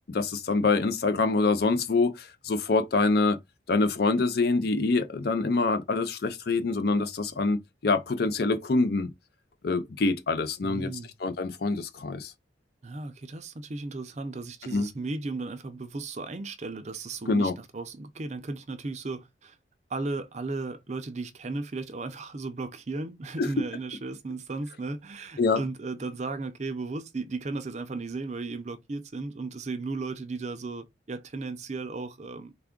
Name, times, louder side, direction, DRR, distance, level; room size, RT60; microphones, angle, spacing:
voice 1, 0.1-3.4 3.7-9.1 9.6-10.9 11.2-12.3 14.7-14.9 17.3-17.5 23.4-23.6 25.4-25.6, left 3 dB, 55° left, 0.4 m, -25 dB
voice 2, 10.6-11.1 12.8-19.6 19.9-32.5, right 3 dB, 35° right, 0.4 m, -35 dB
3.4 x 2.4 x 3.6 m
head